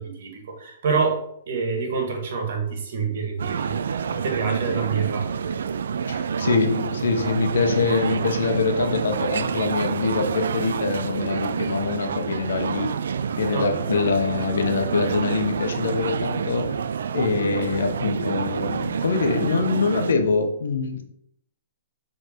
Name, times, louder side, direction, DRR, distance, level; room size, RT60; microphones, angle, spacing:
voice 1, 0.0-3.8 4.1-5.3 13.5-14.0, right 5 dB, 60° right, 3 dB, 1.9 m, -27 dB
sound 1, 3.4-20.1, right 6 dB, 80° right, 0.4 m, -28 dB
voice 2, 6.1-12.9 13.4-16.8 17.1-21.0, left 4 dB, 80° left, 5 dB, 1.1 m, -24 dB
6.8 x 3.8 x 4.6 m, 0.72 s
hypercardioid pair, 145°, 0 cm